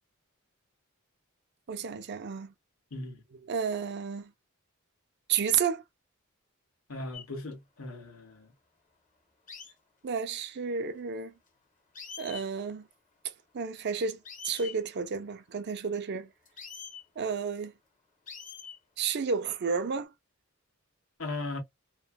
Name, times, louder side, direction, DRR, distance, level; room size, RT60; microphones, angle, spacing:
voice 1, 1.7-2.5 3.5-4.3 5.3-5.8 10.0-11.3 12.2-12.9 13.5-16.3 17.2-17.7 19.0-20.1, right 6 dB, 50° right, 0.5 m, -31 dB
voice 2, 2.9-3.2 6.9-8.5 21.2-21.6, left 2 dB, 75° left, 1.2 m, -38 dB
sound 1, 7.1-7.3 9.5-9.7 11.5-11.6 11.9-12.5 14.2-14.8 16.5-17.0 18.3-18.8 19.7-20.0, left 6 dB, 40° left, 1.0 m, -44 dB
3.1 x 2.1 x 2.2 m
head